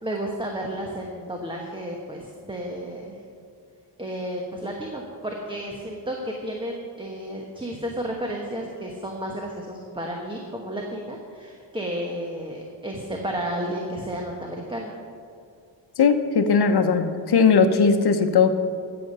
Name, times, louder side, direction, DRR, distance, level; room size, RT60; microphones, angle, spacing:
voice 1, 0.0-3.2 4.0-14.9, right 1 dB, 10° right, 0 dB, 1.3 m, -32 dB
voice 2, 16.0-18.5, left 5 dB, 60° left, 8 dB, 1.0 m, -18 dB
13.5 x 8.1 x 5.5 m, 2.3 s
cardioid pair, 105°, 44 cm